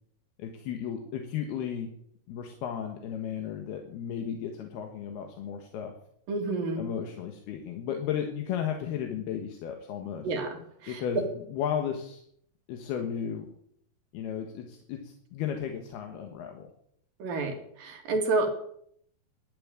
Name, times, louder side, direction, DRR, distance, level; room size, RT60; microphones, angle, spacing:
voice 1, 0.4-1.9 2.3-5.9 6.8-10.3 10.9-12.2 12.7-13.5 14.1-16.7, left 8 dB, 80° left, 4 dB, 3.5 m, -34 dB
voice 2, 6.3-6.9 10.2-11.0 17.2-18.5, right 3 dB, 65° right, 4 dB, 3.8 m, -30 dB
14.0 x 11.5 x 8.8 m, 0.69 s
omnidirectional pair, 4.5 m